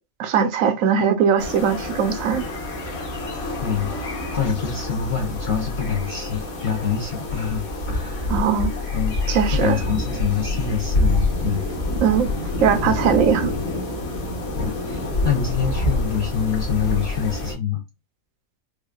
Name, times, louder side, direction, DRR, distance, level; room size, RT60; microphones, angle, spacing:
voice 1, 0.2-2.4 8.3-8.7 9.3-9.8 12.0-12.3 12.6-13.5, right 7 dB, 75° right, 1.0 m, -20 dB
sound 1, 1.4-17.5, left 2 dB, 85° left, 1.6 m, -27 dB
voice 2, 3.6-3.9 4.3-8.3 8.9-11.6 12.8-12.9 14.6-17.8, left 7 dB, 55° left, 0.5 m, -25 dB
4.8 x 2.2 x 2.3 m
omnidirectional pair, 1.4 m